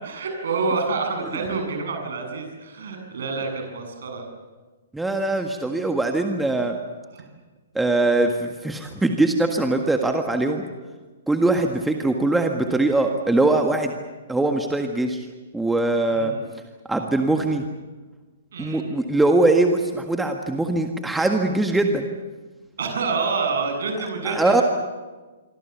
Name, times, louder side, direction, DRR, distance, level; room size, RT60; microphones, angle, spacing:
voice 1, 0.0-4.3 7.1-7.2 16.1-16.4 18.5-18.9 22.8-24.6, right 4 dB, 60° right, 4 dB, 7.7 m, -27 dB
voice 2, 4.9-6.8 7.8-10.6 11.3-13.9 14.3-15.3 15.5-16.3 16.9-17.6 18.6-22.1 24.3-24.6, right 2 dB, 5° right, 4 dB, 1.8 m, -21 dB
26.5 x 24.5 x 7.1 m, 1.3 s
figure-of-eight pair, 120°, 0 cm